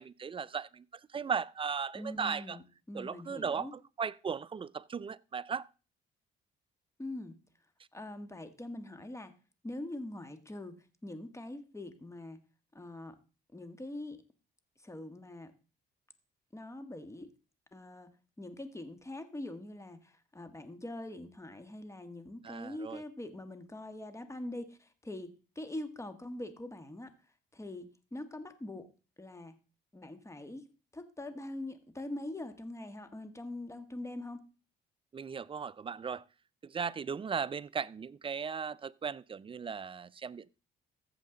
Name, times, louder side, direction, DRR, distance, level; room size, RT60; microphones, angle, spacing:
voice 1, 0.0-2.6 2.9-5.7 22.4-23.0 35.1-36.2 36.6-40.6, right 6 dB, 25° right, 0.4 m, -37 dB
voice 2, 1.9-3.7 7.0-7.4 7.9-9.3 9.6-12.4 12.7-13.2 13.5-14.2 14.8-15.5 16.5-17.3 17.7-18.1 18.4-27.1 27.5-28.9 29.2-29.6 29.9-30.7 30.9-34.4, left 1 dB, 15° left, 1.4 m, -43 dB
14.0 x 7.4 x 3.8 m
cardioid pair, 90°, 20 cm